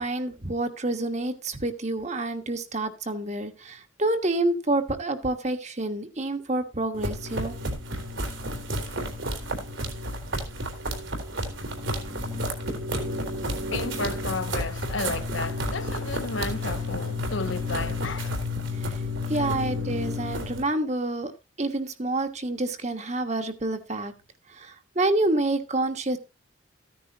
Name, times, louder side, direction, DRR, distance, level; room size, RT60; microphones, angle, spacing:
voice 1, 0.0-7.6 12.7-13.1 18.8-18.9 19.3-21.3 21.6-24.1 24.6-26.2, right 2 dB, 35° right, 1.3 m, -28 dB
sound 1, 6.9-20.6, left 1 dB, 75° right, 3.5 m, -31 dB
voice 2, 13.7-18.5 19.3-19.5, left 3 dB, 75° left, 1.1 m, -33 dB
14.5 x 10.0 x 2.9 m
head